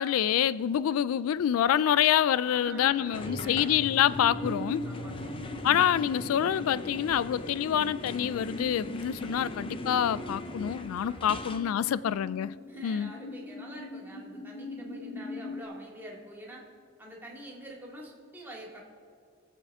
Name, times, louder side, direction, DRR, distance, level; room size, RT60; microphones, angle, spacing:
voice 1, 0.0-4.8 5.6-12.5 12.8-13.1, left 10 dB, 90° left, 19 dB, 0.3 m, -26 dB
voice 2, 2.4-3.8 4.8-5.3 11.1-12.0 12.7-16.7 17.0-18.8, right 1 dB, 10° right, -2 dB, 2.4 m, -46 dB
sound 1, 2.7-15.6, left 1 dB, 55° left, 1.5 m, -42 dB
sound 2, 3.1-11.7, left 1 dB, 25° left, 0.7 m, -39 dB
22.0 x 7.7 x 3.7 m, 2.3 s
head